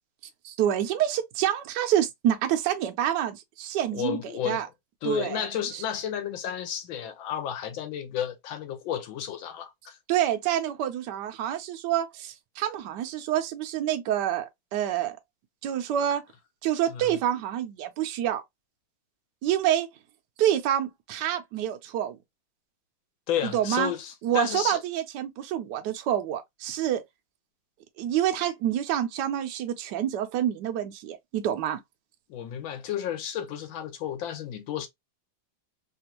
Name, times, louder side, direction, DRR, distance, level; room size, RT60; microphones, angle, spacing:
voice 1, 0.4-4.7 5.0-5.5 5.7-5.8 10.1-15.2 15.6-16.2 16.6-18.4 19.4-19.9 20.4-22.2 23.4-23.9 24.2-27.0 28.0-31.8, right 11 dB, 75° right, 1.0 m, -27 dB
voice 2, 3.9-4.6 5.0-10.0 16.9-17.1 23.3-24.8 32.3-34.9, left 9 dB, 80° left, 1.5 m, -32 dB
3.4 x 2.4 x 2.8 m
omnidirectional pair, 2.1 m